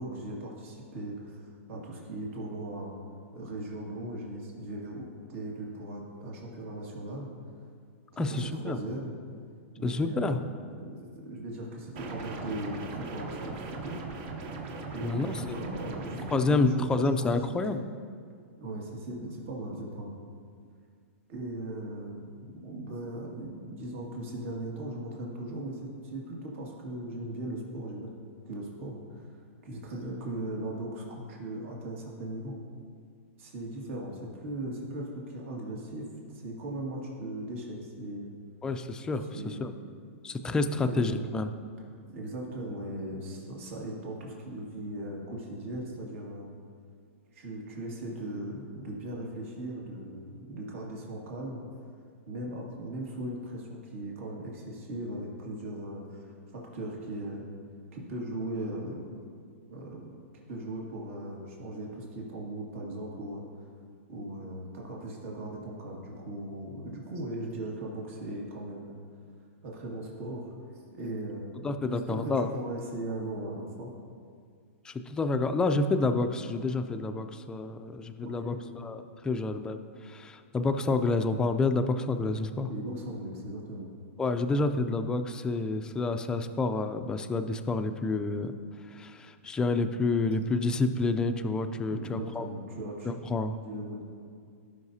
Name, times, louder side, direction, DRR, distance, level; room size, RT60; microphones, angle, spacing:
voice 1, 0.0-2.9 3.3-7.3 8.1-9.2 9.8-10.4 10.8-14.0 14.9-17.3 18.6-20.2 21.3-22.3 22.6-28.1 28.5-29.3 29.6-32.6 33.4-36.1 36.3-38.3 39.3-39.9 40.7-41.2 42.1-46.5 47.3-51.6 52.3-57.4 57.9-59.0 59.7-60.2 60.5-63.4 64.1-69.0 69.6-70.5 70.9-73.9 78.2-78.6 82.7-83.9 91.9-93.1 93.6-94.0, right 1 dB, 65° right, -3 dB, 2.2 m, -38 dB
voice 2, 8.2-8.8 9.8-10.4 15.0-15.6 16.3-17.8 38.6-39.7 40.2-41.5 71.6-72.5 74.8-78.5 78.8-79.8 80.0-82.7 84.2-88.5 88.9-92.4 93.1-93.6, left 3 dB, 10° left, 7 dB, 0.4 m, -29 dB
sound 1, 12.0-16.3, right 3 dB, 40° right, 1.1 m, -39 dB
17.0 x 5.8 x 2.8 m, 2.2 s
hypercardioid pair, 140°, 8 cm